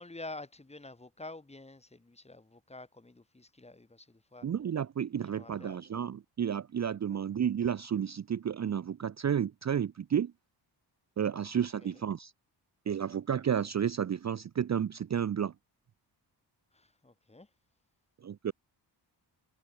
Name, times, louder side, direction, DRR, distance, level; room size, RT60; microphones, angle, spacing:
voice 1, 0.0-4.5 5.2-5.8 11.8-12.0 13.1-13.4 16.7-17.5, left 2 dB, 15° left, 2.6 m, -48 dB
voice 2, 4.4-10.3 11.2-12.3 12.9-15.5 18.2-18.5, right 8 dB, 40° right, 0.6 m, -31 dB
wide cardioid pair, 160°, 42 cm